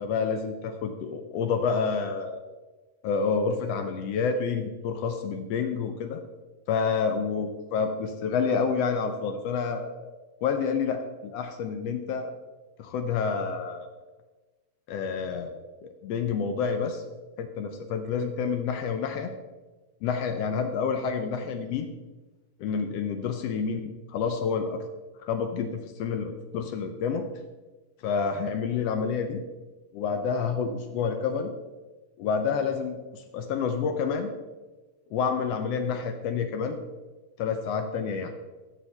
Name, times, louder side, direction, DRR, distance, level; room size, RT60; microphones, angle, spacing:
voice 1, 0.0-2.4 3.0-6.2 6.7-10.1 10.4-12.3 12.8-13.9 14.9-17.0 17.4-19.3 20.0-21.9 22.6-24.8 25.2-27.3 28.0-29.4 29.9-31.5 32.2-34.3 35.1-36.8 37.4-38.3, left 5 dB, 75° left, 7 dB, 1.5 m, -29 dB
14.0 x 6.4 x 3.3 m, 1.2 s
omnidirectional pair, 3.4 m